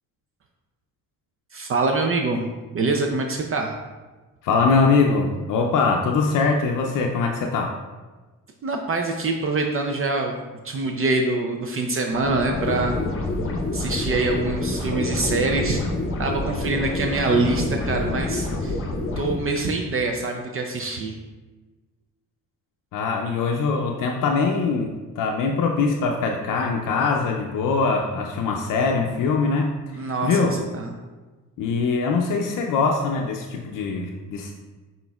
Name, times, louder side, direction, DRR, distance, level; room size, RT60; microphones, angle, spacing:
voice 1, 1.5-2.4 2.7-3.7 8.6-10.4 10.6-13.0 13.7-15.8 16.2-18.8 19.2-21.2 30.0-30.9, right 3 dB, 40° right, 3 dB, 0.5 m, -24 dB
voice 2, 4.4-7.8 22.9-30.5 31.6-34.5, left 4 dB, 70° left, 1 dB, 0.5 m, -22 dB
sound 1, 12.1-19.4, left 2 dB, 40° left, 0.8 m, -27 dB
6.1 x 3.8 x 2.3 m, 1.3 s
cardioid pair, 110°, 33 cm